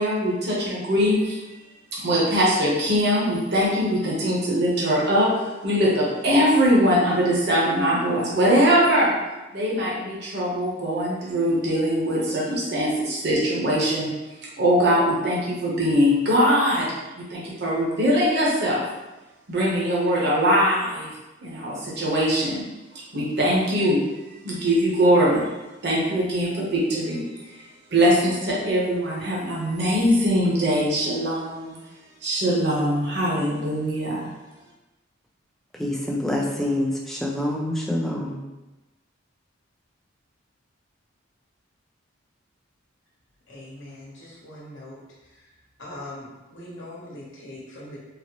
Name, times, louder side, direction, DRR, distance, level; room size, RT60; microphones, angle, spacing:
voice 1, 0.0-1.4 2.0-9.1 9.5-14.1 14.6-16.9 17.1-18.8 19.5-21.1 21.4-22.6 23.1-24.0 24.4-25.5 25.8-27.7 27.9-31.8 32.2-34.3, equal, 55° right, -5 dB, 0.8 m, -22 dB
voice 2, 35.7-38.4, left 1 dB, ahead, -2 dB, 0.4 m, -26 dB
voice 3, 43.5-45.0 45.8-48.0, left 1 dB, 65° left, -5 dB, 1.0 m, -41 dB
3.9 x 2.0 x 2.9 m, 1.1 s
head